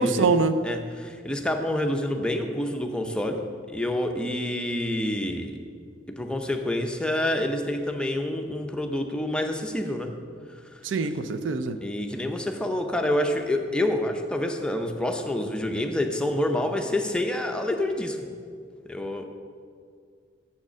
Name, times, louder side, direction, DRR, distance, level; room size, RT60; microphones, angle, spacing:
voice 1, 0.0-0.5 10.8-11.8, right 4 dB, 75° right, 10 dB, 0.4 m, -24 dB
voice 2, 0.6-3.4 3.7-5.6 6.1-10.1 11.8-18.2 18.9-19.2, left 1 dB, 5° left, 3 dB, 0.6 m, -27 dB
7.3 x 6.5 x 6.1 m, 2.1 s
head